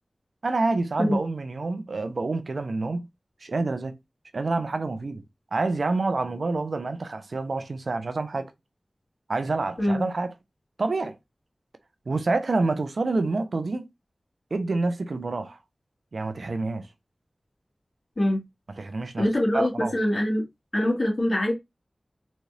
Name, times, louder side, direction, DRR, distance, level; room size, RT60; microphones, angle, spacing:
voice 1, 0.4-3.1 3.4-4.0 4.3-5.2 5.5-8.5 9.3-10.3 10.8-11.2 12.1-13.9 14.5-15.6 16.1-16.9 18.8-19.2 19.5-19.9, right 3 dB, 80° right, 0.6 m, -27 dB
voice 2, 19.2-20.4 20.7-21.5, left 1 dB, 65° left, 2.0 m, -24 dB
4.1 x 2.4 x 3.3 m
wide cardioid pair, 45°, 0 cm